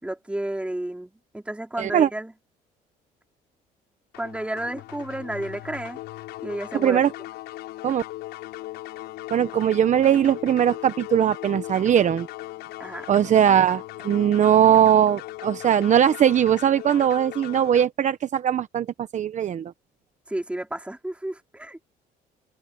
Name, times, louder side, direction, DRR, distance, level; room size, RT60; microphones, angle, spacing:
voice 1, 0.0-2.3 4.2-6.0 6.4-7.0 12.8-13.1 20.3-21.8, right 1 dB, 5° right, 4.6 m, -32 dB
voice 2, 1.8-2.1 6.7-7.1 7.8-8.0 9.3-12.3 13.1-18.9 19.1-19.7, right 9 dB, 45° right, 0.9 m, -20 dB
sound 1, 4.1-17.9, left 16 dB, 85° left, 6.5 m, -38 dB
open air
cardioid pair, 110°, 17 cm